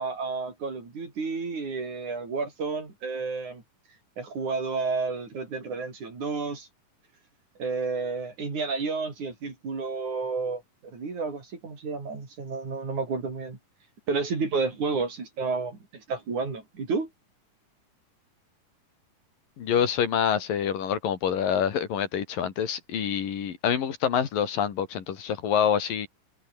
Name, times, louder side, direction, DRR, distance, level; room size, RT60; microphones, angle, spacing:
voice 1, 0.0-3.6 4.2-6.7 7.6-13.6 14.1-17.1, right 4 dB, 60° right, 6.9 m, -31 dB
voice 2, 19.6-26.1, left 8 dB, 75° left, 4.2 m, -26 dB
omnidirectional pair, 3.9 m